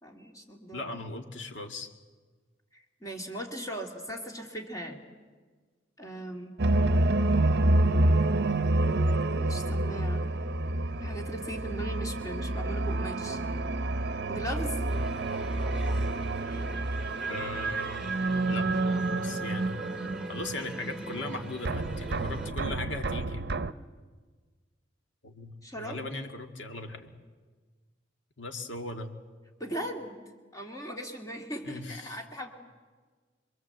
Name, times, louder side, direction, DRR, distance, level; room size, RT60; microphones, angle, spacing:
voice 1, 0.0-1.0 2.7-5.0 6.0-6.6 9.4-10.4 11.0-13.4 14.3-14.9 25.6-26.0 29.6-30.2 30.5-32.5, right 1 dB, 20° left, 2 dB, 2.3 m, -39 dB
voice 2, 0.7-1.9 17.3-18.1 18.5-19.8 20.3-23.4 25.2-27.2 28.4-29.1 31.6-32.2, left 2 dB, 75° left, 5 dB, 2.2 m, -38 dB
sound 1, 6.6-21.3 21.6-23.7, right 2 dB, 60° right, 0.7 m, -28 dB
sound 2, 14.9-22.5, right 1 dB, 5° right, 2.2 m, -41 dB
26.5 x 23.0 x 7.9 m, 1.4 s
head